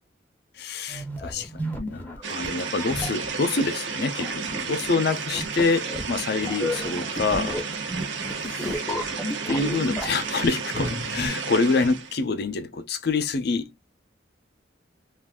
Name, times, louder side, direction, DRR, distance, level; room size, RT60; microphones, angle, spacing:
voice 1, 0.6-7.6 8.4-9.1 9.4-13.7, left 4 dB, 55° left, 0.5 m, -26 dB
sound 1, 0.9-11.3, equal, 10° left, 0.6 m, -33 dB
sound 2, 2.2-12.2, right 5 dB, 70° right, 0.6 m, -32 dB
2.5 x 2.3 x 3.4 m
head